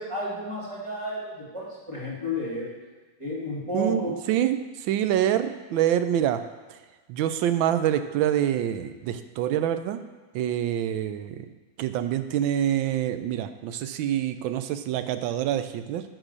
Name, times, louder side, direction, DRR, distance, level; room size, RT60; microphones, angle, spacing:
voice 1, 0.0-2.7 3.2-4.2, left 1 dB, 15° right, -6 dB, 2.6 m, -32 dB
voice 2, 3.7-4.6 4.9-6.4 7.1-10.0 10.3-11.4 11.8-16.0, right 11 dB, 90° right, 10 dB, 1.4 m, -26 dB
10.5 x 4.1 x 6.6 m, 1.3 s
omnidirectional pair, 2.1 m